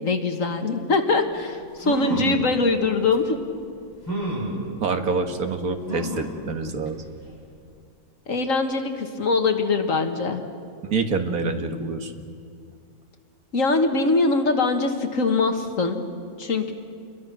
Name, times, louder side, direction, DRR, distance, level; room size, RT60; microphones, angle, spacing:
voice 1, 0.0-3.4 8.3-10.4 13.5-16.0 16.4-16.7, left 3 dB, 60° left, 5 dB, 1.9 m, -22 dB
sound 1, 1.8-2.4 3.1-3.2 4.1-4.6 5.9-6.3 6.9-7.0 7.3-7.4, right 1 dB, 15° left, 6.8 m, -29 dB
voice 2, 4.8-7.0 10.8-12.1, right 4 dB, 75° right, 6 dB, 2.0 m, -26 dB
29.0 x 22.0 x 6.2 m, 2.3 s
omnidirectional pair, 1.6 m